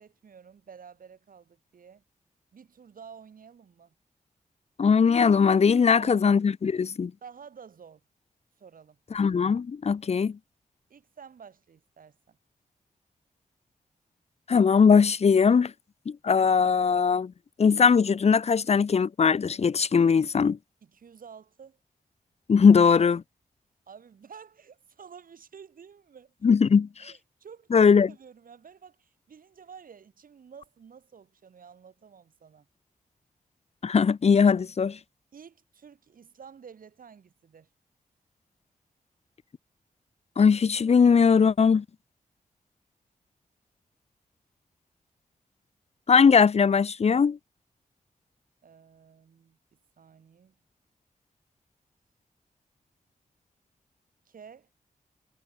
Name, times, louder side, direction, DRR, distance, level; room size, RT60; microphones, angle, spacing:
voice 1, 0.0-2.0 2.5-4.0 6.0-6.3 7.2-8.0 8.6-9.0 10.9-12.4 20.8-21.8 23.9-26.3 27.0-32.7 35.3-37.7 48.6-50.6 54.3-54.7, right 6 dB, 75° right, 5.3 m, -50 dB
voice 2, 4.8-7.1 9.1-10.4 14.5-15.7 16.1-17.3 17.6-20.6 22.5-23.2 26.4-26.9 27.7-28.1 33.8-35.0 40.4-41.8 46.1-47.4, left 6 dB, 45° left, 0.7 m, -20 dB
cardioid pair, 65°, 15 cm